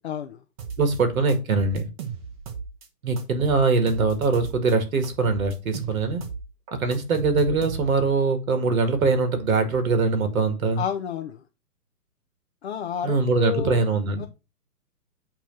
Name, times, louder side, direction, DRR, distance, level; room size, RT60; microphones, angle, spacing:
voice 1, 0.0-0.4 10.8-11.4 12.6-14.3, left 8 dB, 45° left, 0.6 m, -31 dB
sound 1, 0.6-1.0 1.3-2.9 3.2-4.7 5.0-8.1, right 6 dB, 20° right, 1.0 m, -36 dB
voice 2, 0.8-1.9 3.0-6.2 6.7-10.8 13.0-14.2, right 4 dB, 60° right, 1.9 m, -22 dB
8.5 x 3.0 x 5.8 m
hypercardioid pair, 150°, 48 cm